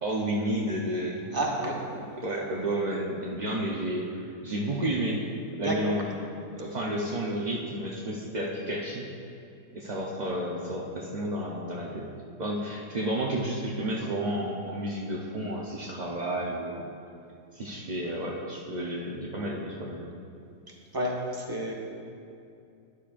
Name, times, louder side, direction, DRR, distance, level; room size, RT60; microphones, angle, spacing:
voice 1, 0.0-1.3 2.2-5.2 5.6-6.1 6.6-9.1 9.7-12.1 12.4-16.9 17.5-20.1, right 1 dB, 45° right, -3 dB, 0.5 m, -31 dB
voice 2, 1.3-1.8 5.6-5.9 20.9-21.7, right 1 dB, 15° right, -3 dB, 1.2 m, -30 dB
13.5 x 11.0 x 2.5 m, 2.5 s
omnidirectional pair, 1.8 m